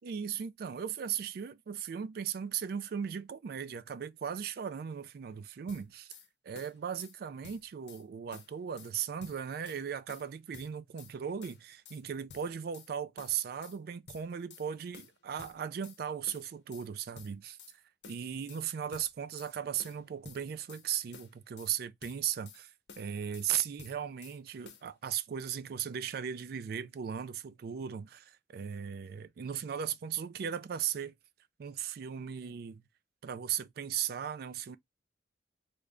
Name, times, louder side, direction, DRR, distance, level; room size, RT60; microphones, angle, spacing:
voice 1, 0.0-6.1 6.4-17.6 18.1-31.2 31.6-32.8 33.2-34.8, right 8 dB, 55° right, 0.3 m, -37 dB
sound 1, 5.7-6.3 6.6-7.2 7.4-8.0 8.3-8.9 9.2-9.8 10.1-11.1 11.4-12.0 12.3-12.9 13.2-13.8 14.1-14.7 14.9-16.0 16.3-16.9 17.2-17.8 18.0-18.6 18.9-19.5 19.8-20.9 21.1-21.7 22.0-22.6 22.9-23.5 23.8-24.4 24.7-24.9, left 6 dB, 65° left, 0.6 m, -53 dB
3.3 x 2.2 x 3.7 m
head